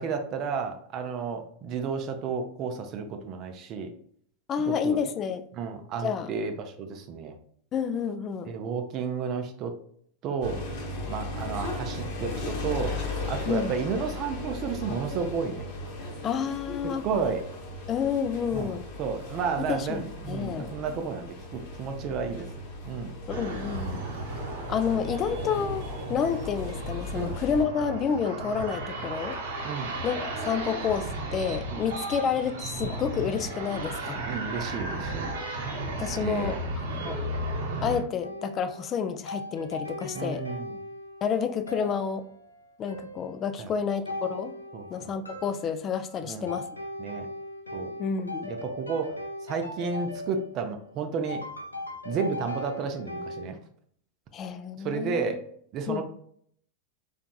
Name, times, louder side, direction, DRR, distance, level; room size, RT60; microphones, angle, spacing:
voice 1, 0.0-3.9 4.6-5.0 5.5-7.4 8.5-9.7 10.2-10.6 11.1-15.6 16.8-17.4 18.5-22.5 22.8-23.2 27.1-27.3 29.6-29.9 31.7-31.9 34.3-35.3 36.2-37.0 40.1-40.8 43.6-43.7 44.7-45.1 46.2-46.6 47.0-47.3 47.7-47.9 48.5-51.4 52.0-53.6 54.8-55.4 55.7-56.0, right 5 dB, 35° right, 6 dB, 0.5 m, -32 dB
voice 2, 4.5-5.4 6.0-6.3 7.7-8.5 13.5-13.7 16.2-17.1 17.9-18.8 19.7-20.7 23.3-24.1 24.7-29.4 30.0-34.2 36.0-36.6 37.1-37.2 37.8-40.4 41.2-42.2 42.8-44.5 44.9-46.7 48.0-48.5 54.3-55.3 55.9-56.0, left 7 dB, 30° left, 10 dB, 0.4 m, -29 dB
sound 1, 10.4-27.6, left 2 dB, 50° left, 0.9 m, -37 dB
sound 2, 23.3-38.0, right 2 dB, 55° right, 0.8 m, -34 dB
sound 3, 38.2-53.5, left 1 dB, 80° left, 0.6 m, -39 dB
3.9 x 3.4 x 2.3 m, 0.64 s
figure-of-eight pair, 90°, 0 cm